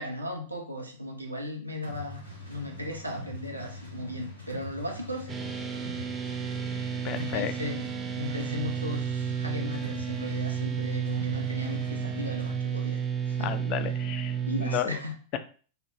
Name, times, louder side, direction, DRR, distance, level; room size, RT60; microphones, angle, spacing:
voice 1, 0.0-2.2 2.5-5.4 7.1-7.9 8.2-13.5 14.4-15.1, left 1 dB, 85° right, 2 dB, 0.6 m, -36 dB
sound 1, 1.8-12.6, left 1 dB, 85° left, 0.9 m, -43 dB
sound 2, 5.3-14.8, right 8 dB, 20° right, 0.5 m, -32 dB
voice 2, 7.0-7.5 12.0-12.1 13.4-15.0, left 11 dB, 40° left, 10 dB, 0.3 m, -33 dB
3.3 x 2.2 x 2.8 m, 0.40 s
figure-of-eight pair, 90°, 0 cm